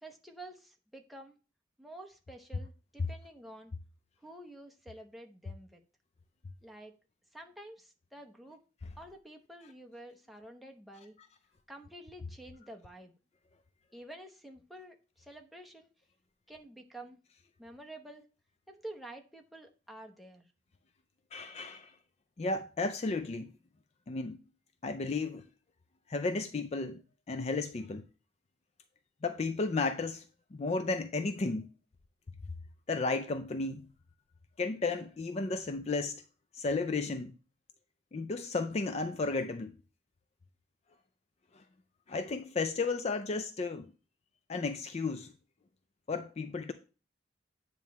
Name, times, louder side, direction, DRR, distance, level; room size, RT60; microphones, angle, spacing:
voice 1, 0.0-1.4 1.8-3.7 4.2-5.8 6.6-6.9 7.3-8.6 9.0-11.2 11.7-13.1 13.9-15.9 16.5-17.2 17.6-18.3 18.7-20.5, right 1 dB, ahead, 0.9 m, -49 dB
voice 2, 21.3-21.9 22.4-23.5 24.1-24.4 24.8-25.5 26.1-27.0 27.3-28.1 29.2-30.2 30.5-31.7 32.9-33.9 34.6-36.2 36.5-37.3 38.1-39.7 41.5-41.6 42.1-43.9 44.5-45.3 46.1-46.7, left 3 dB, 35° left, 0.4 m, -33 dB
9.0 x 3.1 x 5.8 m
head